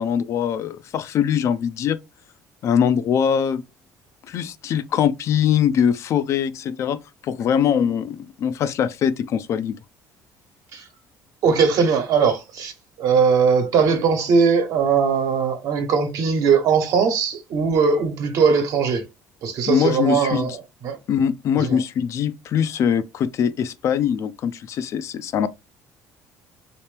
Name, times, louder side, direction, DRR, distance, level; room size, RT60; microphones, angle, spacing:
voice 1, 0.0-2.0 2.6-3.6 4.3-7.0 7.2-9.8 19.7-20.5 21.1-25.5, left 8 dB, 55° left, 0.4 m, -22 dB
voice 2, 11.4-12.7 13.0-19.0 19.4-20.6 20.8-21.0 21.5-21.8, right 5 dB, 65° right, 1.1 m, -20 dB
3.3 x 2.9 x 3.3 m
cardioid pair, 110°, 6 cm